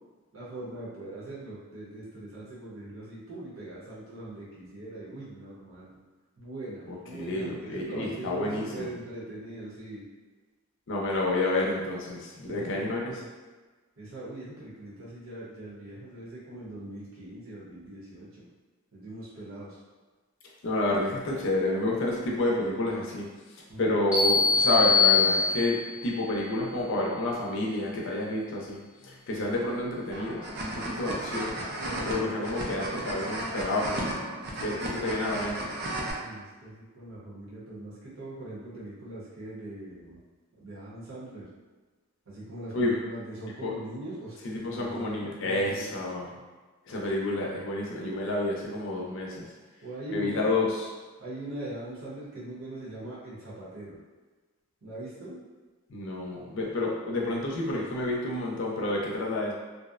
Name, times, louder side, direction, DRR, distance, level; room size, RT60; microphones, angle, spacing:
voice 1, 0.3-6.0 6.4-10.0 12.5-13.2 14.0-18.5 18.9-19.8 23.7-24.0 29.4-29.5 31.8-33.1 36.2-40.2 40.6-41.5 42.3-45.9 49.8-50.5 51.2-54.0 54.8-55.4, right 1 dB, 65° right, -8 dB, 0.8 m, -41 dB
voice 2, 6.9-8.9 10.9-13.1 20.6-23.3 23.8-28.8 29.0-31.6 32.0-34.2 34.6-35.7 42.7-43.0 43.6-43.7 44.4-46.3 46.9-49.5 50.1-50.9 55.9-59.5, left 2 dB, 60° left, -2 dB, 0.5 m, -29 dB
sound 1, 24.1-26.0, left 4 dB, 5° right, 0.8 m, -22 dB
sound 2, 30.1-36.1, right 1 dB, 50° right, 0.4 m, -34 dB
2.6 x 2.0 x 2.4 m, 1.3 s
head